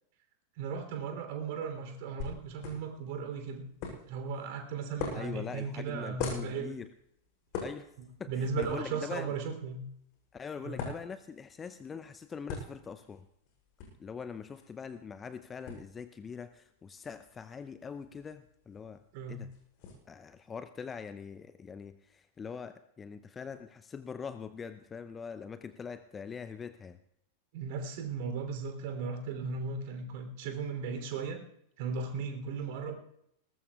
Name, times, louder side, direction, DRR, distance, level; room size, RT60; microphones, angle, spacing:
voice 1, 0.6-3.6 4.0-6.7 8.3-9.8 10.6-10.8 19.1-19.4 27.5-31.4 31.8-32.9, right 5 dB, 50° right, 5 dB, 3.2 m, -36 dB
sound 1, 2.2-19.9, left 5 dB, 40° left, 7.3 m, -45 dB
voice 2, 5.1-6.9 7.6-7.9 8.2-9.4 10.3-13.3 14.0-19.0 19.3-19.5 20.1-27.0, left 6 dB, 20° left, 11 dB, 0.6 m, -43 dB
21.0 x 19.5 x 2.4 m, 0.75 s
figure-of-eight pair, 90°, 0 cm